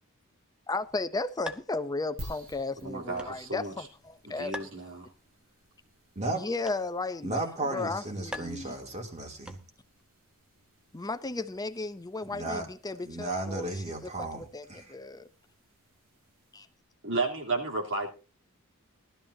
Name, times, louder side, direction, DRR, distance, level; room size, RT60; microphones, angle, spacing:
voice 1, 0.7-4.7 6.3-7.4 7.7-8.7 10.9-13.7 14.2-15.3 16.5-16.7, left 3 dB, 20° left, 0.6 m, -35 dB
sound 1, 0.7-10.0, left 1 dB, 5° right, 1.0 m, -48 dB
sound 2, 2.2-16.9, equal, 80° right, 6.4 m, -53 dB
voice 2, 2.8-3.7 4.2-5.1 17.0-18.1, right 3 dB, 65° right, 3.3 m, -32 dB
voice 3, 7.2-9.6 12.2-12.7 13.0-14.9, right 2 dB, 35° right, 2.9 m, -34 dB
19.0 x 12.5 x 2.8 m
head